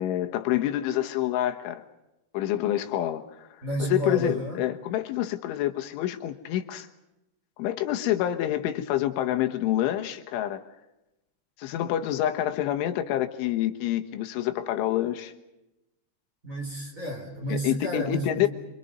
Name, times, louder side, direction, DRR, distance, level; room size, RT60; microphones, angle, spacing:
voice 1, 0.0-1.8 2.3-3.5 3.8-6.9 7.6-10.6 11.6-15.3 17.5-18.5, left 12 dB, 90° left, 6 dB, 3.8 m, -27 dB
voice 2, 3.6-4.6 16.4-18.5, right 1 dB, 20° right, 1 dB, 4.2 m, -31 dB
27.5 x 26.0 x 5.4 m, 0.94 s
omnidirectional pair, 5.4 m